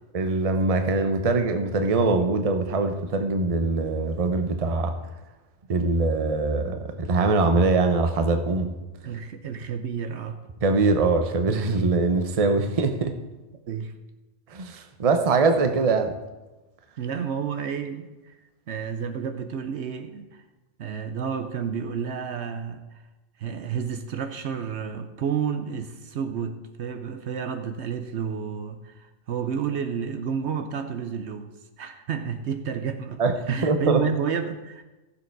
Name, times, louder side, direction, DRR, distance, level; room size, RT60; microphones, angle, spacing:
voice 1, 0.1-4.9 5.7-8.8 10.6-13.1 14.5-16.1 33.2-34.0, right 3 dB, 35° right, 7 dB, 0.8 m, -23 dB
voice 2, 9.0-10.4 13.7-13.9 17.0-18.3 18.7-20.4 20.8-22.8 23.4-31.5 31.8-33.2 33.5-34.8, right 7 dB, 65° right, 8 dB, 1.0 m, -30 dB
14.5 x 7.1 x 4.6 m, 1.1 s
omnidirectional pair, 1.3 m